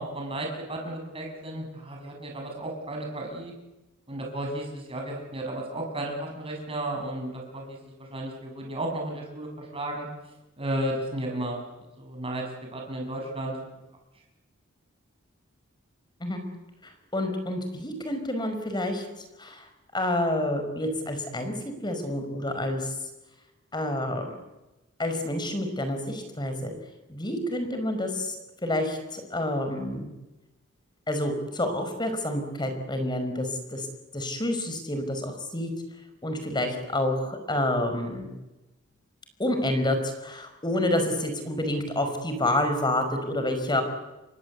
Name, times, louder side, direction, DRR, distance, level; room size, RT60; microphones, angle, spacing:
voice 1, 0.0-3.5 4.1-10.1 10.6-11.6 12.0-12.4 12.7-13.6, right 1 dB, 30° right, 1 dB, 6.9 m, -33 dB
voice 2, 16.8-19.0 19.4-19.7 19.9-21.6 21.8-22.9 23.7-24.3 25.0-26.7 27.1-28.3 28.6-30.1 31.1-33.9 34.1-35.7 36.2-38.3 39.4-43.8, left 1 dB, 20° left, 7 dB, 5.0 m, -28 dB
29.0 x 23.5 x 8.3 m, 1.0 s
head